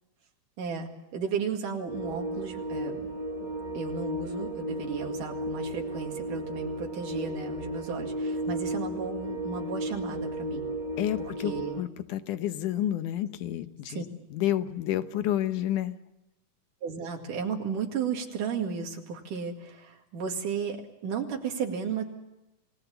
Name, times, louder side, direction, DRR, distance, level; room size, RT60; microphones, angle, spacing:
voice 1, 0.6-3.1 3.7-10.7 11.2-11.8 13.9-14.0 16.8-22.0, right 6 dB, 85° right, 2 dB, 3.7 m, -34 dB
sound 1, 1.8-11.8, right 1 dB, 50° right, 0.5 m, -34 dB
voice 2, 11.0-14.0 14.3-16.0, left 12 dB, 80° left, 10 dB, 2.6 m, -30 dB
29.5 x 19.0 x 7.1 m, 0.96 s
omnidirectional pair, 3.6 m